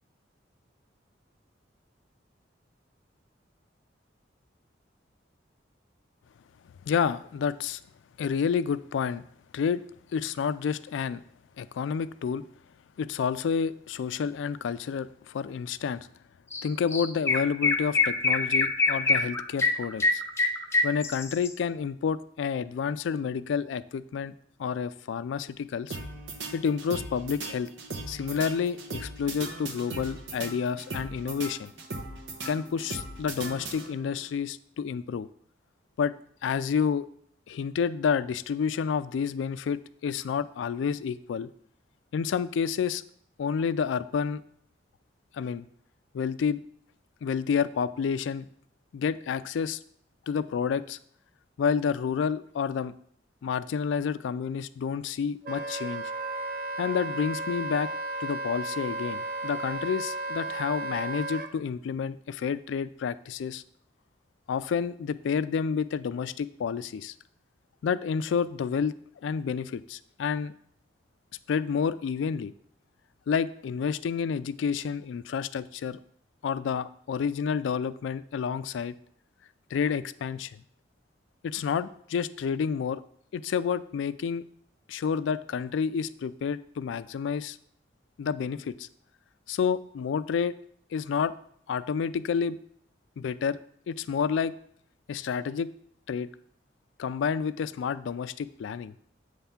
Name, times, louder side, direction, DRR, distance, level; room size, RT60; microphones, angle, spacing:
voice 1, 6.9-7.8 8.2-9.2 9.5-9.8 10.1-11.2 11.6-12.4 13.0-16.1 16.6-20.2 20.8-24.3 24.6-26.0 26.5-27.7 28.0-31.7 32.4-35.3 36.0-36.1 36.4-37.1 37.5-41.5 42.1-43.0 43.4-44.4 45.3-45.7 46.1-46.6 47.2-48.5 48.9-49.8 50.3-51.0 51.6-52.9 53.4-56.1 56.8-57.9 58.2-63.6 64.5-67.1 67.8-68.9 69.2-70.5 71.5-72.5 73.3-76.0 76.4-78.9 79.7-80.6 81.4-83.0 83.3-84.4 84.9-87.6 88.2-88.9 89.5-90.5 90.9-91.3 91.7-92.6 93.2-93.6 93.9-94.5 95.1-95.7 96.1-96.3 97.0-98.9, left 6 dB, 90° left, 15 dB, 0.3 m, -29 dB
Chirp tweet, 16.5-16.6 16.9-21.5, left 3 dB, 15° left, 0.5 m, -25 dB
sound 1, 25.9-34.2, right 2 dB, 85° right, 0.9 m, -39 dB
Wind instrument woodwind instrument, 55.4-61.5, right 2 dB, 50° right, 0.6 m, -34 dB
7.9 x 3.4 x 5.7 m, 0.65 s
head